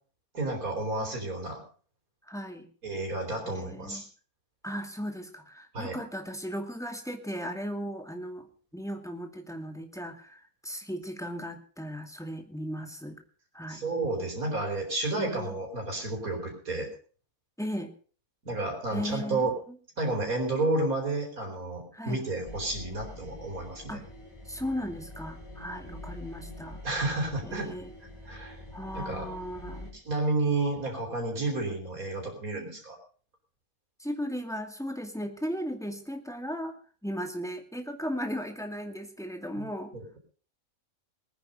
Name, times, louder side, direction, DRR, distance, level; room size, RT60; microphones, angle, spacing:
voice 1, 0.3-1.6 2.8-4.0 5.7-6.0 13.7-16.9 18.4-19.5 20.0-24.0 26.8-27.7 28.3-28.6 28.9-29.3 29.9-33.0 39.6-39.7 39.9-40.1, right 2 dB, 90° right, 1 dB, 4.6 m, -31 dB
voice 2, 2.3-2.7 3.5-4.0 4.6-13.2 13.5-13.8 15.2-15.6 17.6-17.9 18.9-19.8 21.9-22.3 23.9-24.0 24.5-26.8 27.4-27.9 28.7-29.9 34.0-36.8 37.0-39.9, equal, ahead, 5 dB, 2.2 m, -36 dB
sound 1, 22.5-29.9, left 1 dB, 20° left, 5.3 m, -45 dB
19.5 x 10.0 x 5.3 m, 0.41 s
omnidirectional pair, 1.5 m